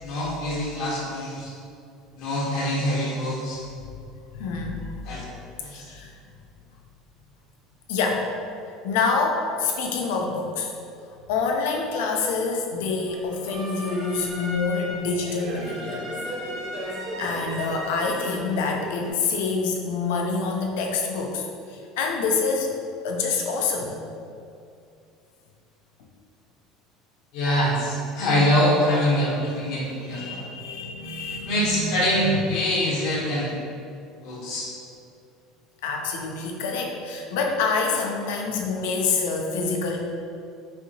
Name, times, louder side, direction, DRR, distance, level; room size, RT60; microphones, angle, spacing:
voice 1, 0.0-1.5 2.2-3.6 5.0-5.2 5.6-5.8 27.3-30.5 31.5-33.5 34.2-34.7, equal, 60° left, -5 dB, 1.0 m, -24 dB
voice 2, 4.3-5.0 5.7-6.2 7.9-8.3 8.8-10.7 11.3-16.1 16.8-22.7 23.0-24.0 29.3-29.5 30.1-32.4 35.8-40.1, left 4 dB, 85° left, 1 dB, 0.6 m, -27 dB
sound 1, 13.1-19.1, equal, 55° right, 0.8 m, -35 dB
5.5 x 2.8 x 2.8 m, 2.5 s
cardioid pair, 175°, 0 cm